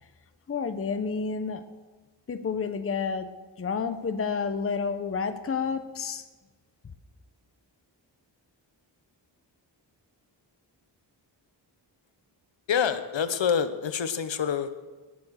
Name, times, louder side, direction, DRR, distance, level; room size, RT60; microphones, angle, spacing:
voice 1, 0.5-1.6 2.3-3.3 3.6-6.2, left 5 dB, 30° left, 10 dB, 0.7 m, -30 dB
voice 2, 12.7-14.7, left 7 dB, 75° left, 11 dB, 0.9 m, -26 dB
18.0 x 7.0 x 6.4 m, 1.3 s
wide cardioid pair, 155°, 45 cm